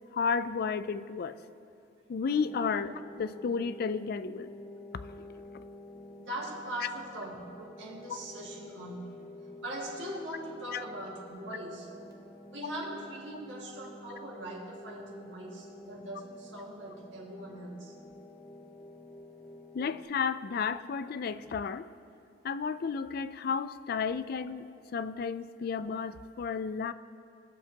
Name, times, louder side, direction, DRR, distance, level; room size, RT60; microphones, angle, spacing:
voice 1, 0.1-1.4 2.1-2.9 3.2-4.5 10.7-10.8 19.7-21.9 22.4-24.6 24.9-26.9, left 5 dB, 55° left, 14 dB, 0.4 m, -32 dB
sound 1, 2.3-20.1, left 1 dB, 20° left, 0.8 m, -49 dB
voice 2, 6.2-9.2 9.4-11.9 12.5-17.9 25.7-25.8, right 1 dB, 90° right, -4 dB, 2.0 m, -41 dB
19.5 x 7.3 x 2.9 m, 2.6 s
head